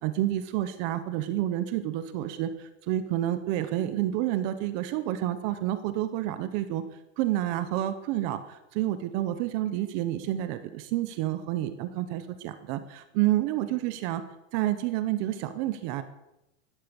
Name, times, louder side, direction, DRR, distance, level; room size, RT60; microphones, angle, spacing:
voice 1, 0.0-2.5 2.9-6.8 7.2-14.2 14.5-16.0, right 13 dB, 25° right, 11 dB, 0.7 m, -29 dB
16.0 x 11.5 x 6.9 m, 0.91 s
supercardioid pair, 175°, 39 cm